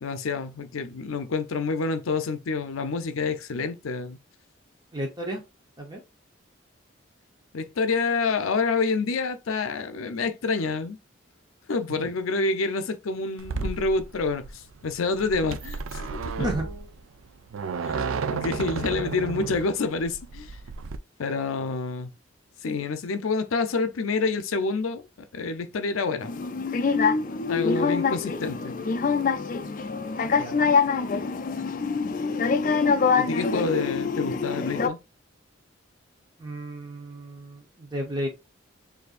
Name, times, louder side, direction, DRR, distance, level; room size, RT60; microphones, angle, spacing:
voice 1, 0.0-4.2 7.5-11.0 11.7-16.5 17.8-18.1 18.3-20.6 21.2-22.1 22.6-25.0 25.3-26.3 27.5-28.7 33.2-35.0, left 4 dB, 90° left, 0.5 m, -28 dB
voice 2, 4.9-5.4 5.8-6.0 12.0-12.1 16.4-16.7 30.4-30.5 36.4-38.3, right 1 dB, 20° right, 0.8 m, -32 dB
sound 1, 13.4-21.0, right 5 dB, 85° right, 0.4 m, -33 dB
sound 2, 26.2-34.9, left 5 dB, 40° left, 0.4 m, -25 dB
6.6 x 2.7 x 2.4 m
head